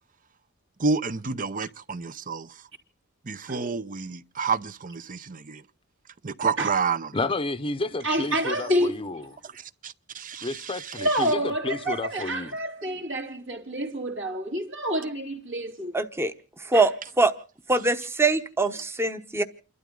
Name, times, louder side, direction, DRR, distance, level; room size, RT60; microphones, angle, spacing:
voice 1, 0.8-2.5 3.3-5.6 6.2-7.1 9.8-10.9, right 5 dB, 40° right, 0.7 m, -29 dB
voice 2, 7.1-9.3 10.4-12.5, left 2 dB, 25° left, 0.8 m, -31 dB
voice 3, 8.0-8.9 11.0-15.9 16.7-16.8, equal, 65° right, 2.9 m, -28 dB
voice 4, 15.9-16.3 16.7-17.3 17.7-19.4, right 3 dB, 10° right, 1.0 m, -23 dB
29.5 x 12.5 x 3.8 m
head